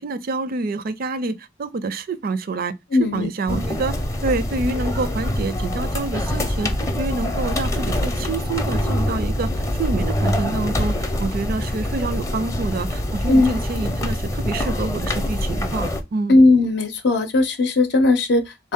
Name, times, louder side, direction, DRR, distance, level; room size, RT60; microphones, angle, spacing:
voice 1, 0.0-2.8 3.1-3.9 4.2-6.7 7.0-16.4, right 3 dB, 50° right, 0.4 m, -27 dB
voice 2, 2.9-3.6 13.3-13.5 16.3-18.7, left 2 dB, 65° left, 0.6 m, -18 dB
sound 1, 3.5-16.0, left 1 dB, 15° left, 0.6 m, -24 dB
3.6 x 2.7 x 3.5 m
head